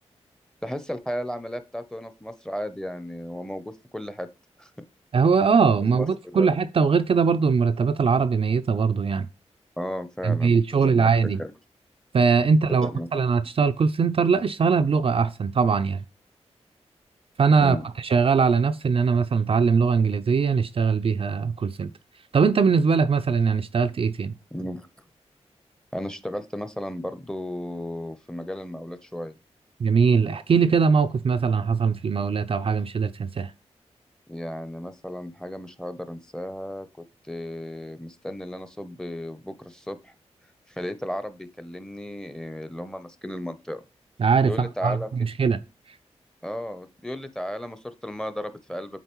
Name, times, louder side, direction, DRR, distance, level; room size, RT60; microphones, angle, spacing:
voice 1, 0.6-4.3 4.6-4.8 5.9-6.1 6.3-6.5 9.8-11.5 12.8-13.1 17.6-17.9 24.5-24.9 25.9-29.4 34.3-36.9 37.3-40.1 40.7-43.8 44.4-45.3 46.4-49.0, equal, 5° left, 0.7 m, -34 dB
voice 2, 5.1-9.3 10.2-11.4 12.1-16.0 17.4-17.8 18.1-21.9 22.3-24.3 29.8-33.5 44.2-45.6, right 5 dB, 55° right, 0.4 m, -21 dB
8.1 x 3.8 x 3.0 m
cardioid pair, 60°, 12 cm